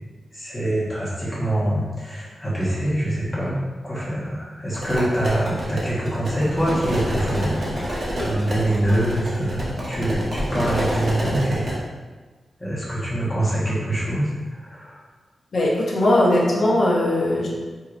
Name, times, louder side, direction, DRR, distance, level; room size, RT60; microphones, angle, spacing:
voice 1, 0.3-3.6 3.8-11.7 12.6-15.0, right 1 dB, 15° left, -8 dB, 1.3 m, -24 dB
sound 1, 4.7-11.8, equal, 50° right, 0.9 m, -28 dB
voice 2, 15.5-17.5, left 1 dB, 60° left, -4 dB, 0.8 m, -19 dB
4.4 x 2.7 x 2.5 m, 1.4 s
wide cardioid pair, 125°, 0 cm